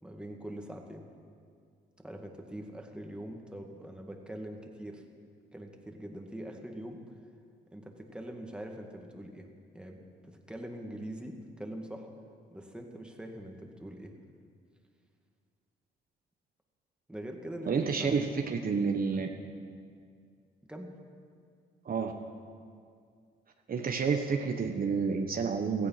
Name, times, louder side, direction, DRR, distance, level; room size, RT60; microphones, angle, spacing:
voice 1, 0.0-1.0 2.0-5.0 5.5-7.0 7.7-9.5 9.7-12.1 12.5-14.1 17.1-18.2 20.7-21.0, right 1 dB, 5° right, 2 dB, 2.1 m, -43 dB
voice 2, 17.7-19.3 21.8-22.1 23.7-25.9, right 5 dB, 45° right, 4 dB, 1.2 m, -29 dB
16.5 x 14.5 x 5.9 m, 2.2 s
cardioid pair, 90°, 20 cm